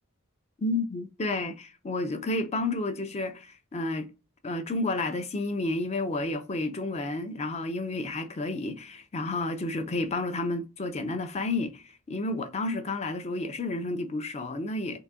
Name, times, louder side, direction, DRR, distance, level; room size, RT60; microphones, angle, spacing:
voice 1, 0.6-4.1 4.4-15.0, left 2 dB, 30° left, 0.5 m, -31 dB
3.8 x 2.7 x 3.5 m
head